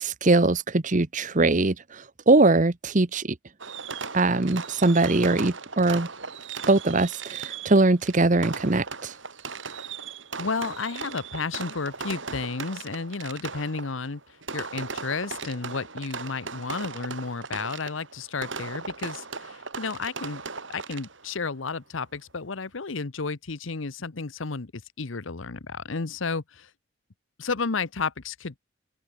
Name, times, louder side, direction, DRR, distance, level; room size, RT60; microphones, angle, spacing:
voice 1, 0.0-3.4 4.1-6.1 6.7-9.2, right 2 dB, 40° right, 1.0 m, -21 dB
Fireworks, 3.6-21.4, right 5 dB, 70° right, 4.1 m, -37 dB
voice 2, 10.4-14.2 14.5-20.4 20.7-26.7 27.4-28.6, left 4 dB, 75° left, 1.0 m, -32 dB
head